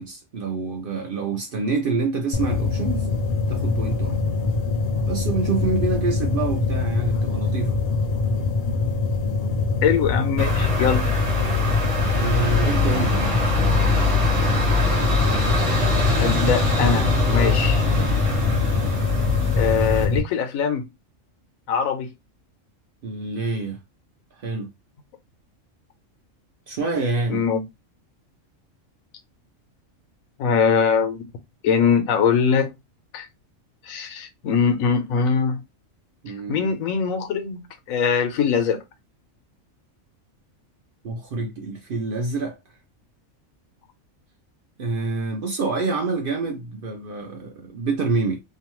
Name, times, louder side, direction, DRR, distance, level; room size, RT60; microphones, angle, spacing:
voice 1, 0.0-3.1 3.5-4.2 5.0-7.8 12.2-13.4 23.0-23.8 24.4-24.7 26.7-27.4 36.2-36.7 41.0-42.6 44.8-48.4, right 3 dB, 60° right, 0.6 m, -27 dB
sound 1, 2.3-20.2, left 4 dB, 60° left, 0.7 m, -24 dB
voice 2, 9.8-11.1 16.2-17.8 19.5-20.9 21.7-22.1 27.3-27.6 30.4-31.2 31.6-32.7 33.1-33.3 33.9-35.6 36.5-38.8, left 6 dB, 85° left, 1.1 m, -22 dB
sound 2, 10.4-20.0, left 2 dB, 25° right, 1.0 m, -23 dB
2.7 x 2.2 x 2.9 m
omnidirectional pair, 1.4 m